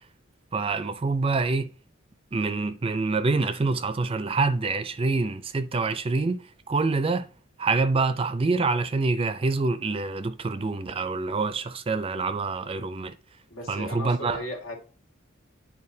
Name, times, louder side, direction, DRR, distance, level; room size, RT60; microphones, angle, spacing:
voice 1, 0.5-1.7 2.3-7.2 7.6-13.1 13.7-14.5, right 3 dB, 25° right, 0.4 m, -26 dB
voice 2, 13.5-14.9, left 1 dB, 80° left, 1.8 m, -36 dB
9.6 x 4.5 x 2.7 m
head